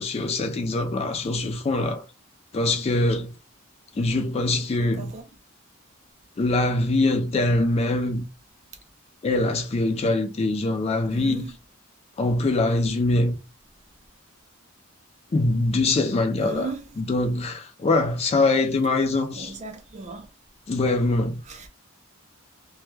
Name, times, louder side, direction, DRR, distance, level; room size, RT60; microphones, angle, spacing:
voice 1, 0.0-2.0 2.5-3.4 4.0-5.1 6.4-8.3 9.2-11.5 12.2-13.4 15.3-19.6 20.7-21.4, left 2 dB, 30° left, 0.3 m, -23 dB
voice 2, 11.1-11.5 16.4-16.8 19.3-20.3 21.5-21.7, right 3 dB, 35° right, 0.5 m, -36 dB
2.2 x 2.2 x 3.1 m
head